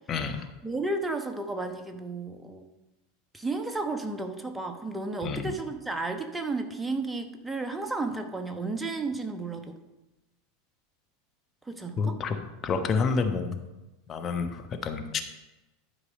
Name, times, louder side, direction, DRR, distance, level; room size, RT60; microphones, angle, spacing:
voice 1, 0.1-0.4 5.2-5.5 12.0-12.4 12.6-13.6 14.1-15.2, left 5 dB, 30° left, 6 dB, 1.1 m, -28 dB
voice 2, 0.6-2.7 3.3-9.8 11.6-12.2, right 3 dB, 10° right, 5 dB, 1.1 m, -33 dB
11.5 x 4.9 x 5.1 m, 1.0 s
figure-of-eight pair, 80°, 0 cm